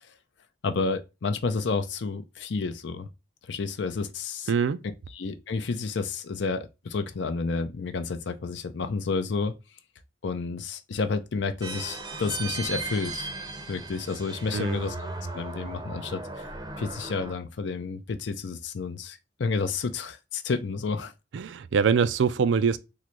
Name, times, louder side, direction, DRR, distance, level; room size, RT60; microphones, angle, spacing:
voice 1, 0.6-3.1 3.5-4.5 5.1-9.5 10.2-13.3 13.7-15.0 15.3-16.5 16.8-21.1, left 4 dB, 70° left, 0.5 m, -30 dB
voice 2, 4.5-4.8 14.5-14.9 21.3-22.8, right 6 dB, 75° right, 0.4 m, -24 dB
sound 1, 11.6-17.3, right 3 dB, 20° right, 0.6 m, -37 dB
3.7 x 2.1 x 2.9 m
head